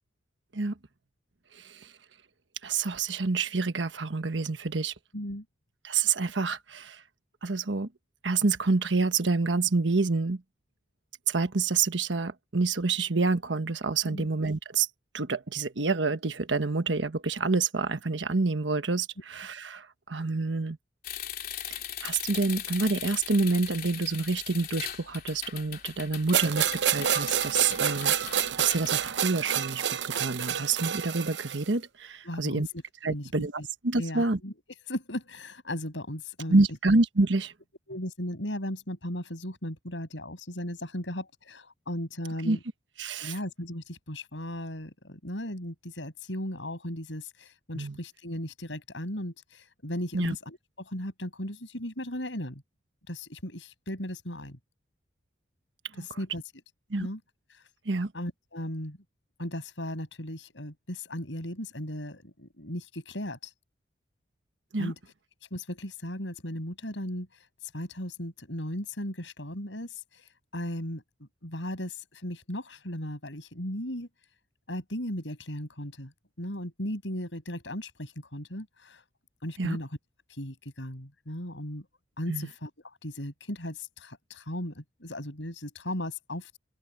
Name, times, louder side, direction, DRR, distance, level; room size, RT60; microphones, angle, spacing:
voice 1, 2.6-4.9 5.8-7.0 7.4-7.9 8.2-10.4 11.3-14.9 15.1-20.8 21.7-28.1 28.6-32.7 33.0-34.4 36.5-37.5 42.4-42.6 43.0-43.3 47.7-48.0 50.1-50.3 56.0-56.1 56.9-57.1 57.8-58.1 64.7-64.9 79.6-79.8 82.3-82.5, right 3 dB, 85° right, 1.3 m, -28 dB
voice 2, 5.1-5.4 14.0-14.3 32.2-33.7 34.0-34.5 34.9-36.7 37.9-42.6 43.2-52.6 53.1-54.6 56.0-56.4 57.0-57.2 57.5-57.7 58.1-59.0 59.4-63.5 64.8-65.0 65.5-74.1 74.7-76.1 76.4-79.0 79.4-80.0 80.3-81.9 82.2-86.6, left 1 dB, 90° left, 7.5 m, -37 dB
sound 1, 21.0-28.9, left 10 dB, 55° left, 3.0 m, -39 dB
sound 2, 26.3-31.7, right 9 dB, 70° right, 0.8 m, -28 dB
open air
head